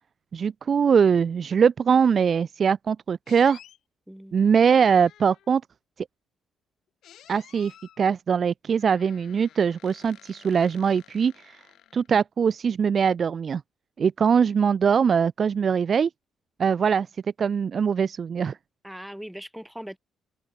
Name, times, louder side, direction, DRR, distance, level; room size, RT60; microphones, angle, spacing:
voice 1, 0.3-3.6 4.3-5.6 7.3-7.7 8.0-11.6 11.9-13.6 14.0-16.1 16.6-17.1 17.4-18.6, right 6 dB, 50° right, 0.4 m, -22 dB
sound 1, 3.3-3.8 4.8-5.6 7.0-8.0 8.8-12.2, left 11 dB, 75° left, 4.4 m, -52 dB
voice 2, 4.1-4.4 18.8-20.0, equal, 5° right, 3.3 m, -40 dB
open air
cardioid pair, 90°, 0 cm